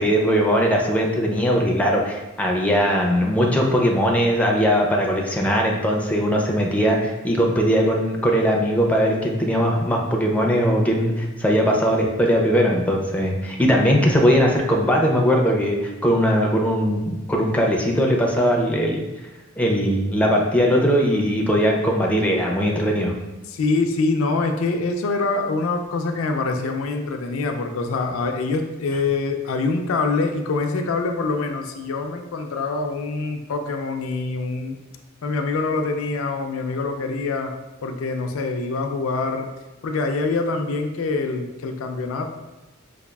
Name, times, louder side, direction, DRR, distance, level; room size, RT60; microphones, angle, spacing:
voice 1, 0.0-19.0 19.6-23.1, equal, 5° left, -1 dB, 0.4 m, -20 dB
voice 2, 23.5-34.8 35.2-37.5 37.8-39.5 39.8-42.3, left 3 dB, 80° left, 5 dB, 0.4 m, -25 dB
4.8 x 2.3 x 2.2 m, 1.1 s
head